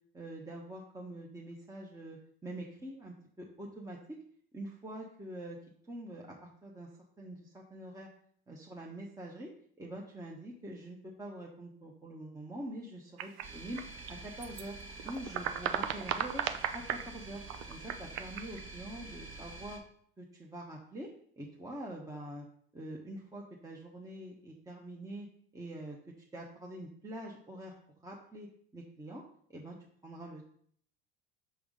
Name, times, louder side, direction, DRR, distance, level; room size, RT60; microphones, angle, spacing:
voice 1, 0.1-4.2 4.5-5.6 5.9-6.9 7.2-8.1 8.5-9.5 9.8-13.8 14.1-14.8 15.0-16.4 16.7-17.4 17.7-19.8 20.2-21.1 21.4-22.5 22.7-25.3 25.5-26.0 26.3-27.7 28.0-28.5 28.7-29.2 29.5-29.8 30.0-30.5, right 1 dB, 10° right, -2 dB, 1.1 m, -45 dB
sound 1, 13.2-14.6 14.9-17.1 17.5-18.6, right 10 dB, 75° right, 0.6 m, -36 dB
sound 2, 13.4-19.8, right 2 dB, 40° right, 1.5 m, -48 dB
6.1 x 3.4 x 5.3 m, 0.62 s
hypercardioid pair, 75°, 30 cm